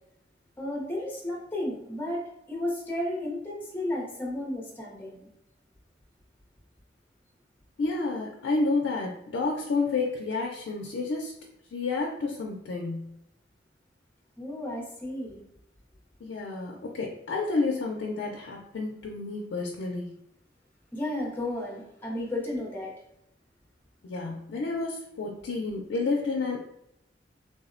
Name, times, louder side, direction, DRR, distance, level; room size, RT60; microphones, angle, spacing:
voice 1, 0.6-5.3 14.4-15.4 20.9-22.9, left 1 dB, 10° left, -2 dB, 0.5 m, -33 dB
voice 2, 7.8-11.4 11.7-13.1 16.2-20.1 24.0-26.6, left 3 dB, 80° left, -1 dB, 0.4 m, -30 dB
3.5 x 2.0 x 2.5 m, 0.81 s
head